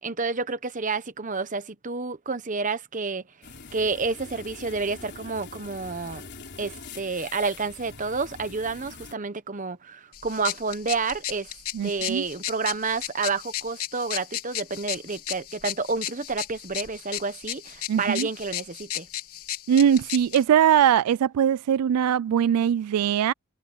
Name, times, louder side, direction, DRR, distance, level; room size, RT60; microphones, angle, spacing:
voice 1, 0.0-3.2 3.7-6.2 6.6-11.5 11.8-19.1, right 4 dB, 35° right, 1.1 m, -29 dB
sound 1, 3.4-9.1, left 4 dB, 50° left, 4.1 m, -44 dB
sound 2, 10.1-20.4, left 12 dB, 80° left, 3.2 m, -35 dB
voice 2, 11.7-12.2 17.9-18.3 19.7-23.3, right 9 dB, 90° right, 0.3 m, -21 dB
head